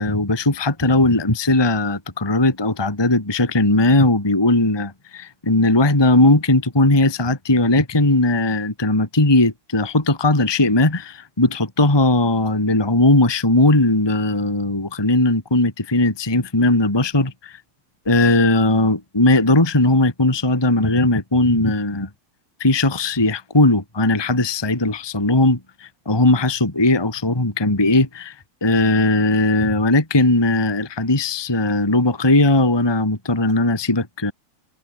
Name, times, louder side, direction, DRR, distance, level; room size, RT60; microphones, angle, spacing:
voice 1, 0.0-17.5 18.1-22.1 22.6-25.6 26.1-28.3 28.6-34.3, left 2 dB, 5° left, 2.2 m, -18 dB
omnidirectional pair, 4.6 m